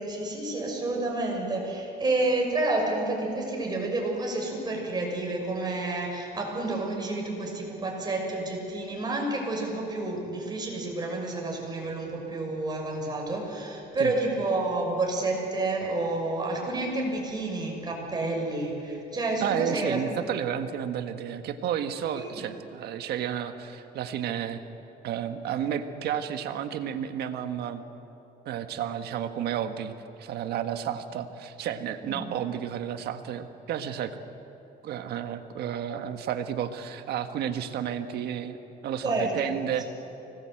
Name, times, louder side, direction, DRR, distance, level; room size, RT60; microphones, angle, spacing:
voice 1, 0.0-20.3 22.1-22.4 32.0-32.2 39.0-39.6, right 2 dB, 25° right, 0 dB, 6.4 m, -30 dB
voice 2, 19.4-24.6 25.0-27.8 28.4-29.9 30.2-34.2 34.8-38.6 38.8-39.9, right 9 dB, 70° right, 8 dB, 1.5 m, -31 dB
25.0 x 19.5 x 7.9 m, 2.9 s
cardioid pair, 110°, 17 cm